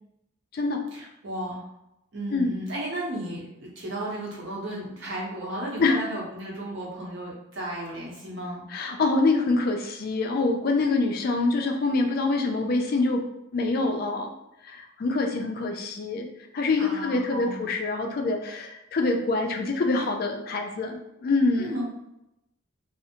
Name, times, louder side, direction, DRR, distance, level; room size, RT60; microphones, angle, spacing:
voice 1, 0.9-1.6 2.1-8.7 16.8-17.6 20.0-20.1 21.6-21.8, right 1 dB, 60° right, -4 dB, 0.8 m, -34 dB
voice 2, 8.7-13.2 13.5-14.3 14.6-16.3 16.5-21.8, left 3 dB, 45° left, 3 dB, 0.3 m, -25 dB
2.5 x 2.0 x 2.8 m, 0.87 s
head